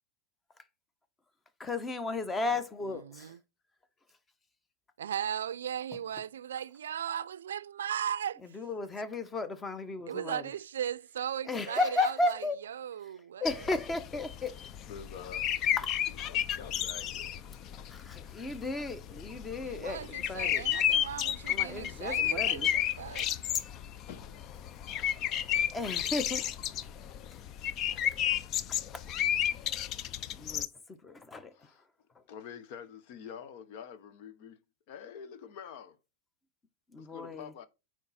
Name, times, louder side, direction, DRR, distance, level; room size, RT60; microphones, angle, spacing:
voice 1, 1.6-3.3 8.5-10.4 11.5-12.6 13.4-14.6 15.8-16.0 17.9-20.6 21.5-22.7 25.7-26.5 28.9-29.0 30.4-30.7 31.0-31.5 36.9-37.5, left 2 dB, 15° left, 1.1 m, -34 dB
voice 2, 2.9-3.4 5.0-8.6 10.1-13.7 19.6-23.5, right 9 dB, 80° right, 0.4 m, -37 dB
sound 1, 13.5-30.7, left 10 dB, 40° left, 0.6 m, -32 dB
voice 3, 14.9-15.6 15.9-17.3 24.1-24.5 27.2-27.3 31.5-31.9 32.3-34.6 34.9-36.0 37.0-37.7, left 7 dB, 55° left, 1.0 m, -47 dB
8.5 x 4.7 x 4.2 m
hypercardioid pair, 110°, 0 cm